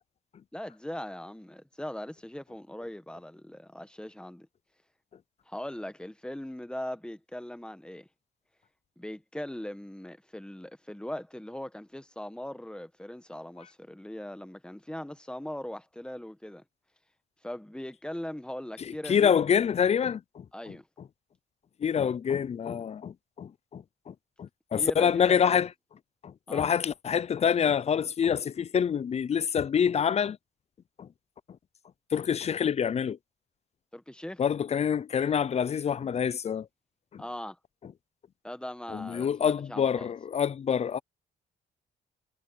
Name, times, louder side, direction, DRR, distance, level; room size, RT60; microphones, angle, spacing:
voice 1, 0.5-4.5 5.5-8.1 9.0-16.6 17.4-19.4 20.5-20.9 24.8-25.6 26.5-26.7 33.9-34.4 37.2-37.6 38.4-40.1, left 1 dB, 5° left, 1.3 m, -40 dB
voice 2, 18.9-20.4 21.8-25.7 26.2-30.4 31.0-31.1 32.1-33.2 34.4-36.7 37.1-37.2 38.9-41.0, left 7 dB, 35° left, 0.4 m, -26 dB
cardioid pair, 90°, 20 cm